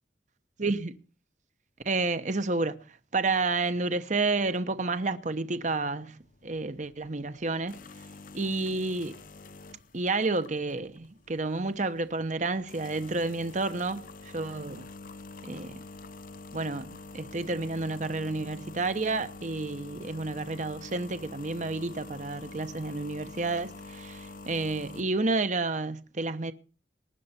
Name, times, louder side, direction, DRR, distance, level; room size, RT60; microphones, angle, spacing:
voice 1, 0.6-1.0 1.8-7.8 8.3-9.2 9.9-14.9 15.4-15.8 16.5-26.5, right 3 dB, 45° right, 1.0 m, -30 dB
sound 1, 6.2-25.3, left 3 dB, 50° left, 0.8 m, -47 dB
19.5 x 9.4 x 4.4 m
head